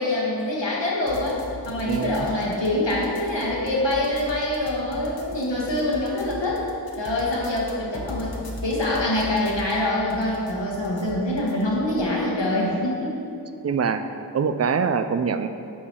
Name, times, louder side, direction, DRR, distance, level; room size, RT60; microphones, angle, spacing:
voice 1, 0.0-1.4 1.6-6.6 7.0-8.3 8.6-13.2, left 1 dB, 80° left, -5 dB, 1.6 m, -25 dB
sound 1, 1.1-12.1, left 2 dB, 55° left, 1.0 m, -39 dB
voice 2, 1.9-2.3 13.6-14.0 14.3-15.5, right 6 dB, 40° right, 9 dB, 0.4 m, -24 dB
6.0 x 3.9 x 6.2 m, 2.6 s
wide cardioid pair, 45°, 43 cm